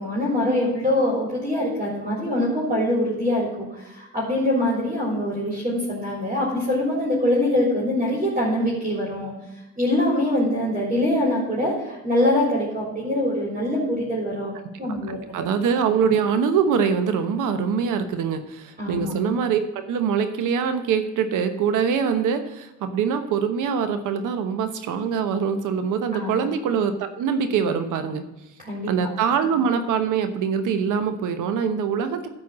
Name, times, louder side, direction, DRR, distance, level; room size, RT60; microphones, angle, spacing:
voice 1, 0.0-9.3 9.8-14.5 14.8-15.5 18.8-19.1 26.1-26.5 28.6-28.9, left 1 dB, 25° right, -4 dB, 3.6 m, -24 dB
voice 2, 14.9-19.6 19.9-28.3 28.9-32.3, right 6 dB, 85° right, 9 dB, 1.1 m, -23 dB
10.5 x 4.6 x 7.4 m, 1.0 s
cardioid pair, 90°, 30 cm